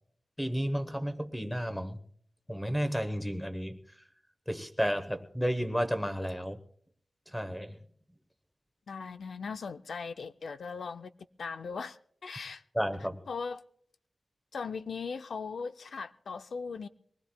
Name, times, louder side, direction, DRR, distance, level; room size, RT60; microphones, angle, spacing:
voice 1, 0.4-2.0 2.5-3.8 4.5-6.6 7.3-7.8 12.7-13.2, equal, 5° left, 1.0 m, -32 dB
voice 2, 8.9-11.1 11.4-12.0 12.2-12.6 13.3-13.6 14.5-16.9, left 5 dB, 90° left, 0.5 m, -38 dB
23.0 x 19.5 x 2.3 m
wide cardioid pair, 115°, 0 cm